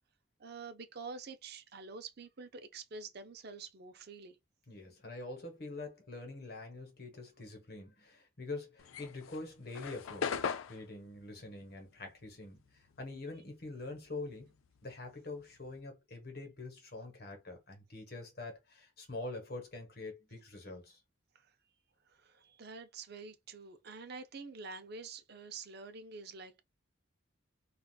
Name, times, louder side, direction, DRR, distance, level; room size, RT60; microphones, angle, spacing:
voice 1, 0.4-4.4 21.3-21.5 22.1-26.6, right 4 dB, 50° right, 0.5 m, -47 dB
voice 2, 4.7-14.5 14.8-21.0, left 2 dB, 50° left, 1.2 m, -45 dB
sound 1, 8.8-13.5 13.8-15.8, left 6 dB, 80° left, 0.4 m, -40 dB
3.6 x 2.4 x 2.3 m
head